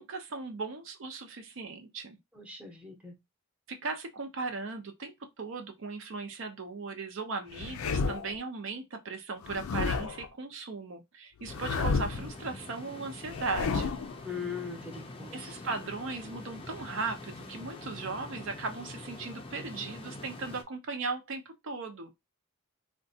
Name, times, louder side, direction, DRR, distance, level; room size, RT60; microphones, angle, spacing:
voice 1, 0.0-2.2 3.7-14.0 15.3-22.1, right 4 dB, 65° right, 0.6 m, -37 dB
voice 2, 2.3-3.1 14.2-15.6, left 6 dB, 5° right, 0.7 m, -40 dB
sound 1, 7.5-8.4 9.4-10.3 11.4-12.3 13.3-14.2, left 4 dB, 85° left, 0.4 m, -31 dB
sound 2, 11.5-20.6, left 2 dB, 25° left, 0.4 m, -45 dB
3.6 x 2.2 x 2.7 m
head